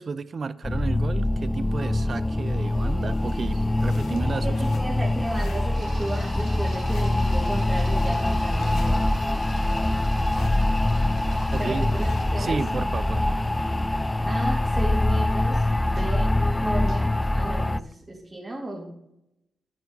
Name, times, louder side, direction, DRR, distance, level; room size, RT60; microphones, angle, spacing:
voice 1, 0.0-4.6 11.5-11.9 12.4-13.4, right 4 dB, 50° right, 0.4 m, -32 dB
sound 1, 0.6-17.8, left 1 dB, 15° left, 0.3 m, -24 dB
Camera, 1.7-17.3, right 3 dB, 75° right, 2.6 m, -52 dB
sound 2, 3.1-12.6, left 4 dB, 80° left, 1.3 m, -48 dB
voice 2, 4.4-9.1 11.6-12.6 14.2-16.3 16.6-19.0, right 1 dB, 25° right, 2.2 m, -34 dB
9.0 x 8.0 x 3.9 m
supercardioid pair, 55°, 0 cm